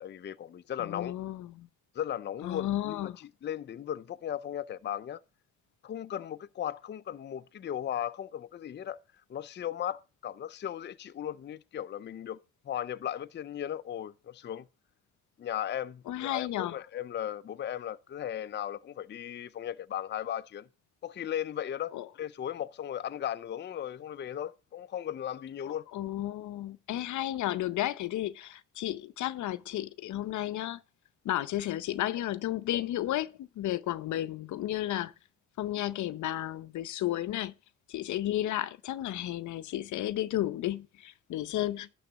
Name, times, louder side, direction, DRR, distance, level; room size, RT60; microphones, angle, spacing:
voice 1, 0.0-1.1 1.9-5.2 5.8-9.0 9.3-12.4 12.6-14.7 15.4-20.7 21.0-25.8, left 10 dB, 35° left, 0.5 m, -36 dB
voice 2, 0.8-1.7 2.4-3.2 16.1-16.8 21.9-22.1 25.9-30.8 31.2-35.1 35.6-37.5 37.9-41.9, left 13 dB, 75° left, 0.7 m, -33 dB
11.5 x 4.0 x 7.9 m
cardioid pair, 90°, 30 cm